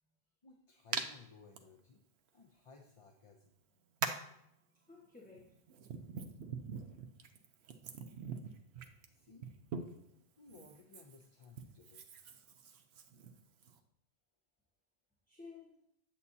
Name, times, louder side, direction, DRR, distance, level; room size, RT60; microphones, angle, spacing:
voice 1, 0.4-2.0 2.3-3.6 9.1-9.5 10.4-12.0, left 4 dB, 40° left, 2 dB, 0.6 m, -59 dB
Hands, 0.9-1.1 1.5-1.6 2.9-3.0 4.0-4.3 5.3-10.1 10.5-13.8, right 6 dB, 85° right, 1.0 m, -43 dB
voice 2, 4.2-5.6 15.3-15.8, left 4 dB, 10° left, -4 dB, 1.1 m, -56 dB
8.5 x 8.2 x 2.7 m, 0.74 s
omnidirectional pair, 1.1 m